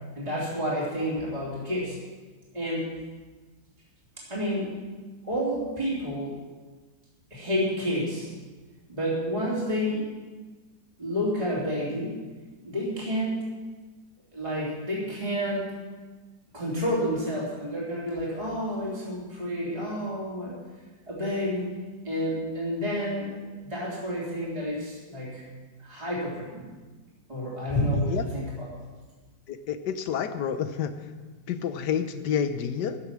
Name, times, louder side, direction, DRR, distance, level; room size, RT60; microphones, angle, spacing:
voice 1, 0.2-2.0 2.5-2.9 4.3-4.9 5.2-6.4 7.3-8.3 8.9-10.1 11.0-12.2 12.6-13.4 14.3-15.9 16.5-20.6 21.1-21.7 22.0-25.4 25.8-26.7 27.3-28.7, equal, 20° right, -7 dB, 3.7 m, -29 dB
voice 2, 29.5-30.9 31.5-33.0, left 8 dB, 75° left, 10 dB, 1.5 m, -29 dB
15.0 x 10.0 x 6.2 m, 1.3 s
omnidirectional pair, 1.8 m